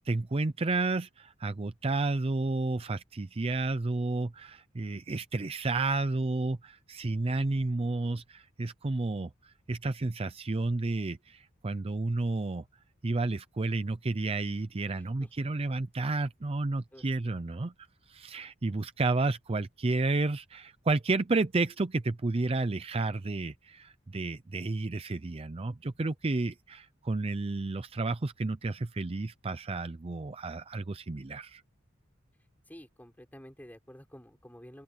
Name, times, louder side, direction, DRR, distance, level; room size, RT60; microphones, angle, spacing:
voice 1, 0.1-12.6 13.0-17.7 18.1-31.6, right 3 dB, 30° right, 0.5 m, -31 dB
voice 2, 14.9-15.3 16.9-17.1 32.7-34.8, equal, 10° left, 6.4 m, -50 dB
open air
head